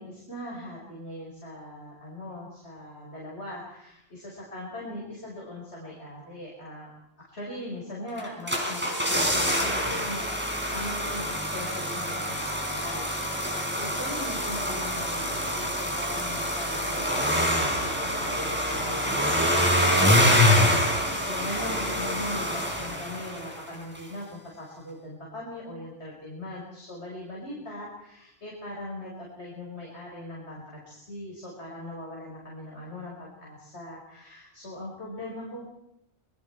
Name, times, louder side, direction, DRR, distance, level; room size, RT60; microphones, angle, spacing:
voice 1, 0.0-6.9 7.2-19.3 19.6-35.6, left 1 dB, 65° left, -4 dB, 5.9 m, -40 dB
sound 1, 8.2-23.7 24.0-24.1, equal, 10° right, 4.5 m, -26 dB
28.0 x 23.0 x 4.6 m, 0.82 s
omnidirectional pair, 1.2 m